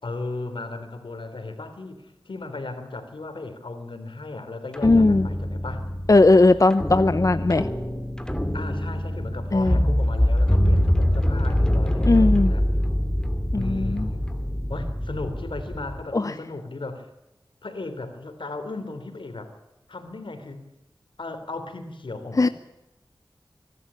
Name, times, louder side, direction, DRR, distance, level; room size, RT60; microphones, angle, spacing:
voice 1, 0.0-5.8 8.5-12.6 13.5-14.2 14.7-17.1 17.6-19.5 19.9-20.6 21.2-22.5, left 3 dB, 80° left, 8 dB, 3.4 m, -36 dB
sound 1, 4.7-16.0, equal, 10° left, 2.4 m, -24 dB
voice 2, 4.8-5.3 6.1-7.7 9.5-9.8 12.0-12.5 13.5-14.1 16.1-16.3 22.4-22.5, left 2 dB, 40° left, 13 dB, 0.8 m, -18 dB
24.5 x 12.0 x 9.9 m, 0.97 s
cardioid pair, 40°, 9 cm